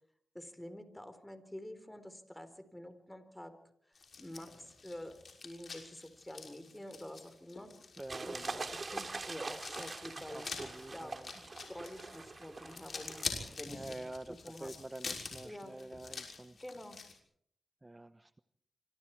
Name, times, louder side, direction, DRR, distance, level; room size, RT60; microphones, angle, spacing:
voice 1, 0.3-3.6 3.8-3.9 4.2-5.2 5.4-7.7 8.2-10.5 10.9-11.1 11.7-14.0 14.4-14.7 15.4-15.8 16.6-17.0, left 1 dB, 10° left, 10 dB, 4.2 m, -48 dB
sound 1, 3.9-17.1, left 4 dB, 65° left, 6.3 m, -46 dB
voice 2, 8.0-8.7 10.3-11.3 13.3-16.6 17.8-18.4, right 2 dB, 20° right, 11 dB, 1.0 m, -47 dB
sound 2, 8.1-13.3, right 3 dB, 45° right, 2.6 m, -43 dB
26.0 x 24.5 x 4.7 m, 0.68 s
cardioid pair, 55°, 0 cm